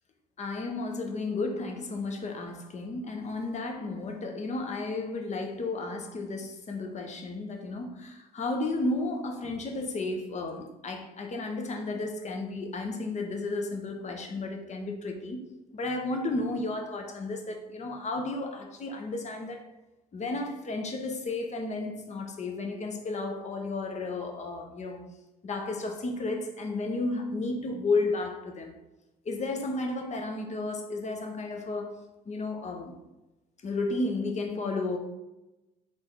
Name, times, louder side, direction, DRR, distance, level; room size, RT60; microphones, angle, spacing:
voice 1, 0.4-15.4 15.7-19.7 20.1-25.0 25.4-28.8 29.2-33.0 33.6-35.0, left 2 dB, 35° left, 1.0 m, -33 dB
3.8 x 3.4 x 4.0 m
hypercardioid pair, 55°, 20 cm